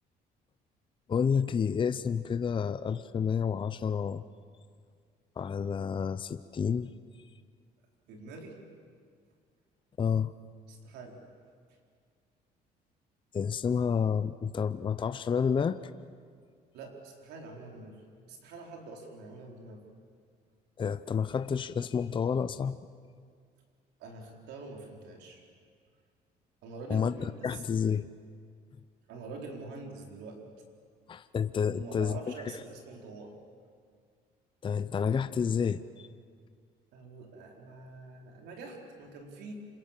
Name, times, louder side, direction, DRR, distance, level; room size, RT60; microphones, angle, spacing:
voice 1, 1.1-4.2 5.4-6.9 10.0-10.3 13.3-15.8 20.8-22.8 26.9-27.1 27.4-28.1 31.1-32.2 32.5-32.6 34.6-36.1, left 6 dB, 30° left, 12 dB, 0.6 m, -29 dB
voice 2, 8.1-8.6 10.7-11.2 16.7-18.0 18.3-19.8 24.0-25.4 26.6-27.2 27.5-27.6 29.1-30.4 31.6-33.4 36.9-39.5, right 3 dB, 85° right, 2 dB, 4.4 m, -45 dB
27.5 x 25.5 x 7.5 m, 2.1 s
cardioid pair, 110°, 17 cm